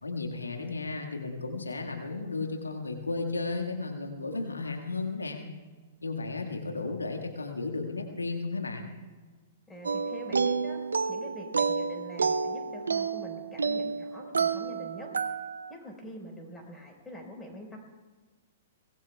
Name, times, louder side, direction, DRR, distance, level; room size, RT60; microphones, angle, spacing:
voice 1, 0.0-5.5 6.0-8.9, left 3 dB, 85° left, 3 dB, 1.8 m, -34 dB
voice 2, 9.7-10.8 11.1-15.1 15.7-17.8, equal, 10° left, 0 dB, 4.7 m, -45 dB
sound 1, 9.8-15.7, right 5 dB, 80° right, 0.6 m, -30 dB
23.5 x 19.0 x 2.4 m, 1.3 s
figure-of-eight pair, 110°, 0 cm